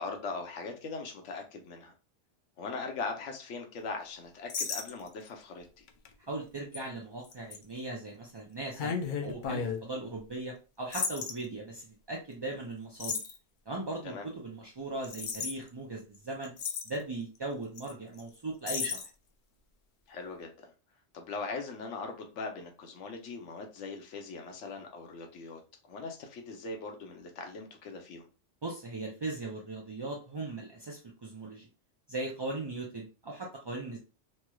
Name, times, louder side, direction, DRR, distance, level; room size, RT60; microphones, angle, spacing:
voice 1, 0.0-1.9 2.6-5.8 14.0-14.3 20.1-20.7 21.1-25.6 25.9-28.3, left 4 dB, 80° left, 3 dB, 1.0 m, -40 dB
sound 1, 4.5-5.3 5.9-6.1 6.7-6.8 7.3-7.6 8.8-9.8 10.9-11.3 13.0-13.4 15.0-15.5 16.1-16.2 16.4-17.0 17.8-17.9 18.2-18.3 18.7-19.1, left 6 dB, 60° left, 0.5 m, -34 dB
voice 2, 6.3-8.9 9.2-13.2 13.7-16.5 16.9-19.0 28.6-31.7 32.1-34.0, right 2 dB, 40° right, -1 dB, 0.3 m, -38 dB
3.1 x 2.9 x 2.3 m, 0.33 s
omnidirectional pair, 1.2 m